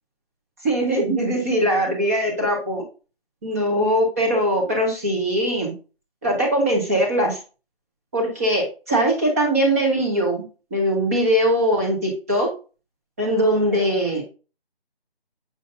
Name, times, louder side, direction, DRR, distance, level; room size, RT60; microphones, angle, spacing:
voice 1, 0.6-2.8 3.4-5.7 6.2-7.4 8.1-10.4 10.7-12.5 13.2-14.3, equal, 15° right, -1 dB, 1.2 m, -21 dB
6.7 x 6.3 x 2.6 m, 0.33 s
figure-of-eight pair, 160°, 31 cm